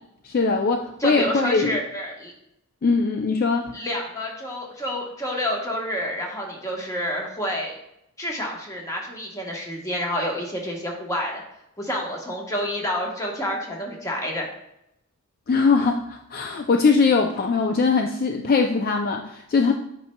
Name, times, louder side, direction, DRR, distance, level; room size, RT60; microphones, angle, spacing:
voice 1, 0.2-1.8 2.8-3.7 15.5-19.7, left 4 dB, 45° left, 4 dB, 0.4 m, -21 dB
voice 2, 1.0-2.3 3.7-7.7 8.2-11.4 11.8-14.5, equal, 15° left, 0 dB, 1.1 m, -28 dB
8.2 x 5.4 x 2.2 m, 0.81 s
head